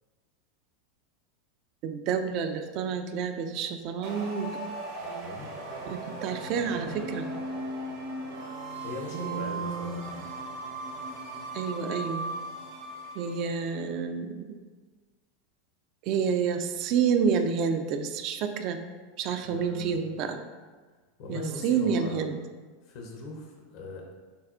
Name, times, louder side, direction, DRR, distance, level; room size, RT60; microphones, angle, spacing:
voice 1, 1.8-4.6 5.9-7.3 9.1-10.0 11.5-12.3 13.2-14.6 16.0-18.8 19.2-20.4 21.3-22.4, right 6 dB, 50° right, 7 dB, 0.4 m, -29 dB
sound 1, 4.0-13.7, right 2 dB, 65° right, 1.0 m, -38 dB
voice 2, 5.0-5.5 8.8-10.3 19.4-20.0 21.2-22.2 22.8-24.1, left 2 dB, 60° left, 0 dB, 0.7 m, -40 dB
6.8 x 2.3 x 2.5 m, 1.4 s
hypercardioid pair, 90°, 0 cm